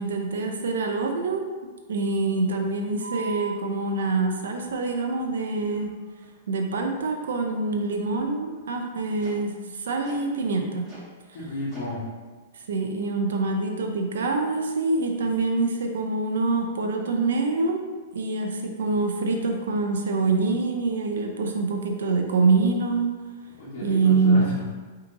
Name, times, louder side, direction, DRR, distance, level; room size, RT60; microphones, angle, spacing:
voice 1, 0.0-1.4 1.9-5.9 6.5-10.8 12.7-17.8 18.1-23.1 23.8-24.5, right 3 dB, 85° right, 3 dB, 0.5 m, -25 dB
sound 1, 3.0-3.5 4.5-4.7 5.1-5.2 5.7-5.9 6.2-6.3 6.9-7.0 7.4-7.5 8.0-8.2 8.6-8.7 9.2-9.4 10.0-10.2 10.9-11.1 11.7-11.9 12.6-12.7, right 4 dB, 20° right, 1.3 m, -40 dB
voice 2, 11.3-12.0 23.6-24.6, left 1 dB, 55° left, -9 dB, 1.2 m, -32 dB
3.4 x 2.8 x 3.8 m, 1.4 s
hypercardioid pair, 145°, 0 cm